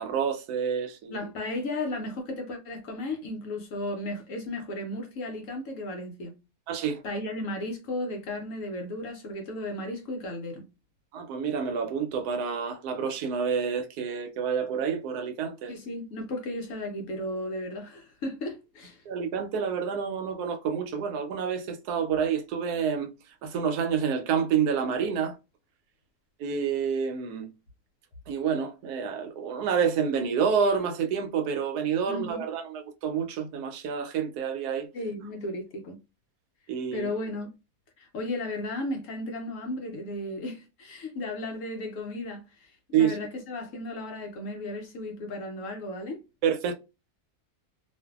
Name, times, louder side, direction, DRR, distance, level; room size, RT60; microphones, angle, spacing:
voice 1, 0.0-1.3 6.7-7.0 11.1-15.7 19.1-23.1 23.4-25.4 26.4-27.5 28.3-34.9 36.7-37.1 42.9-43.2 46.4-46.7, right 7 dB, 80° right, 1.1 m, -28 dB
voice 2, 1.1-6.4 7.0-10.7 15.7-19.0 32.1-32.4 34.9-36.0 36.9-37.5 38.0-46.2, left 1 dB, 65° left, 0.9 m, -35 dB
2.5 x 2.5 x 2.3 m
omnidirectional pair, 1.6 m